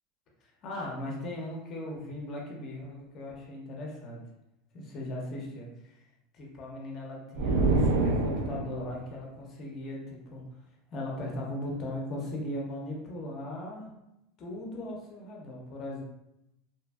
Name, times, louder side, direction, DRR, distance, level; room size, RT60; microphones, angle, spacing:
voice 1, 0.4-4.2 4.7-5.7 6.0-6.1 6.3-10.4 10.9-13.9 14.4-16.0, left 1 dB, 30° left, -1 dB, 0.5 m, -38 dB
sound 1, 7.3-8.9, right 2 dB, 70° right, 0.3 m, -26 dB
2.6 x 2.4 x 2.2 m, 0.85 s
supercardioid pair, 175°, 0 cm